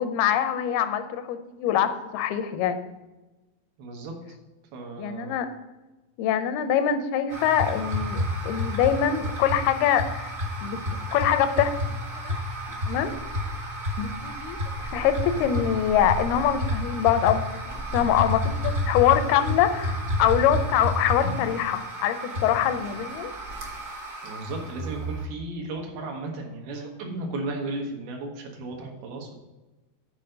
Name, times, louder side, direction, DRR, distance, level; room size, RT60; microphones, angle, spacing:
voice 1, 0.0-2.9 5.0-5.5 6.2-10.3 10.6-12.0 12.2-12.4 12.9-13.1 14.0-14.6 14.8-23.3, left 9 dB, 85° left, 9 dB, 2.6 m, -24 dB
voice 2, 3.8-4.1 4.7-5.4 24.2-29.3, right 2 dB, 75° right, 1 dB, 3.1 m, -35 dB
sound 1, 7.3-25.3, left 1 dB, 50° right, 0.9 m, -31 dB
8.4 x 4.5 x 6.5 m, 1.1 s
omnidirectional pair, 4.4 m